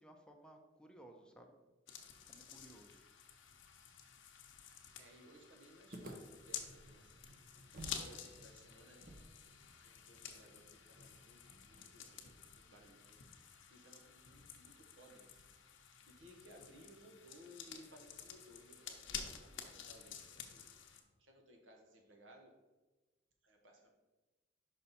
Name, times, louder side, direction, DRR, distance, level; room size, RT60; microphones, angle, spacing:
voice 1, 0.0-1.5 2.3-3.0, right 1 dB, 5° left, 3 dB, 0.6 m, -59 dB
sound 1, 1.9-21.0, left 7 dB, 85° left, 0.8 m, -51 dB
voice 2, 5.0-7.3 8.0-9.1 9.8-13.2 13.7-15.3 16.2-20.7 21.2-22.5 23.4-23.9, equal, 85° right, 2 dB, 1.2 m, -61 dB
sound 2, 5.9-8.1 8.3-8.4 9.0-12.1, right 1 dB, 50° right, 0.8 m, -55 dB
sound 3, 6.6-12.1, equal, 70° right, 1.2 m, -67 dB
5.6 x 5.3 x 4.1 m, 1.2 s
head